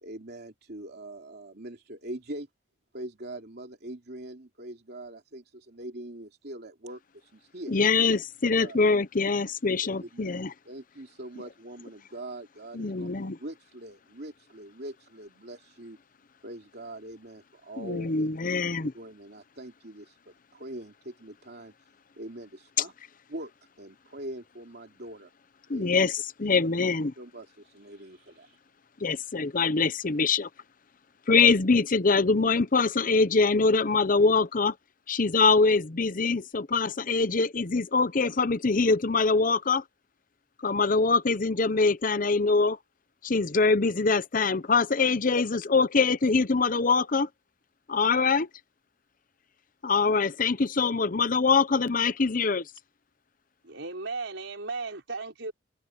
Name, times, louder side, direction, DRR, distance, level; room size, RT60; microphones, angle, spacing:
voice 1, 0.0-2.5 2.9-7.7 8.5-8.8 9.8-10.4 10.6-16.0 16.4-18.5 18.9-21.7 22.2-22.9 23.3-23.5 23.8-25.3 25.7-26.1 26.6-26.7 27.2-28.6, right 1 dB, 60° right, 2.9 m, -43 dB
voice 2, 7.7-10.5 12.7-13.4 17.8-18.9 25.7-27.1 29.0-30.5 31.3-34.7 35.1-39.8 40.6-42.8 43.2-47.3 47.9-48.5 49.8-52.6, left 4 dB, 45° left, 0.8 m, -24 dB
voice 3, 53.6-55.5, right 3 dB, 85° right, 4.8 m, -35 dB
head